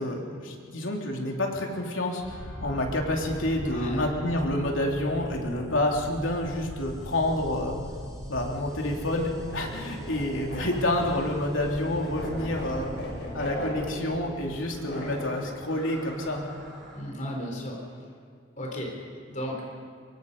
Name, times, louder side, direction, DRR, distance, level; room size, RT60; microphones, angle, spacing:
voice 1, 0.0-7.8 8.2-12.9 13.3-16.4, left 1 dB, 90° left, 0 dB, 3.3 m, -28 dB
sound 1, 2.2-17.0, equal, 5° left, 6.3 m, -41 dB
voice 2, 3.7-4.1 16.9-17.9 18.6-18.9 19.3-19.6, equal, 40° left, -1 dB, 3.8 m, -34 dB
sound 2, 8.5-15.4, equal, 65° left, 6.4 m, -39 dB
24.0 x 23.5 x 5.5 m, 2.2 s
head